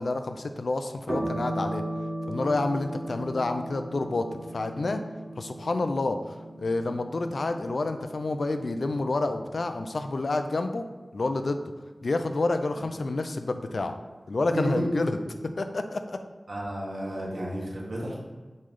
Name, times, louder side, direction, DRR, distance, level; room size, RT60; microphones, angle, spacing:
voice 1, 0.0-1.8 2.3-5.0 5.4-10.8 11.1-11.6 12.0-13.9 14.3-15.1 15.4-16.2, left 2 dB, 75° left, 7 dB, 0.5 m, -29 dB
sound 1, 1.1-9.9, right 1 dB, 40° right, 1.4 m, -37 dB
voice 2, 14.4-15.0 16.5-18.2, right 1 dB, 75° right, -4 dB, 1.7 m, -32 dB
8.0 x 3.3 x 3.8 m, 1.3 s
wide cardioid pair, 55°, 0 cm